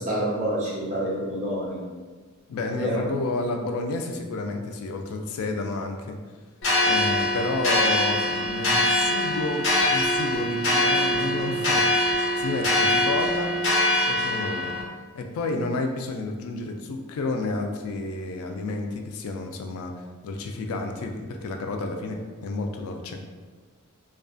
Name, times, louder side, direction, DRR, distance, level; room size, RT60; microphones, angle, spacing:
voice 1, 0.0-1.8 2.7-3.0, right 1 dB, 35° right, -7 dB, 0.8 m, -27 dB
voice 2, 2.5-6.2 6.8-13.5 14.1-14.7 15.1-19.9 20.2-23.2, left 3 dB, 80° left, 4 dB, 0.3 m, -30 dB
sound 1, 6.6-14.8, left 1 dB, 60° left, 0.7 m, -23 dB
2.3 x 2.2 x 2.4 m, 1.4 s
head